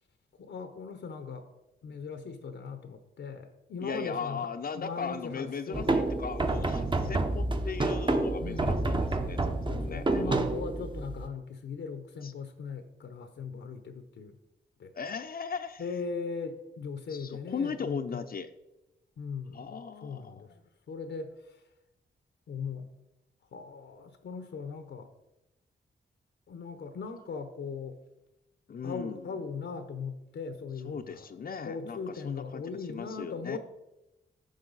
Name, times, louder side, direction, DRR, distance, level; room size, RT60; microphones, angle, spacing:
voice 1, 0.4-1.5 1.8-4.5 4.7-6.0 8.4-8.8 9.6-14.4 14.8-14.9 15.8-18.2 19.2-20.5 20.9-21.6 22.5-22.9 23.5-25.1 26.5-28.0 28.8-31.3 31.6-33.6, left 5 dB, 80° left, 8 dB, 0.8 m, -39 dB
voice 2, 3.8-10.3 12.2-12.3 14.9-15.8 17.1-18.5 19.5-20.6 28.7-29.3 30.8-33.6, left 6 dB, 55° left, 8 dB, 0.6 m, -38 dB
sound 1, 5.7-11.3, right 2 dB, 25° right, 0.9 m, -29 dB
10.5 x 6.5 x 4.0 m, 0.95 s
cardioid pair, 80°, 18 cm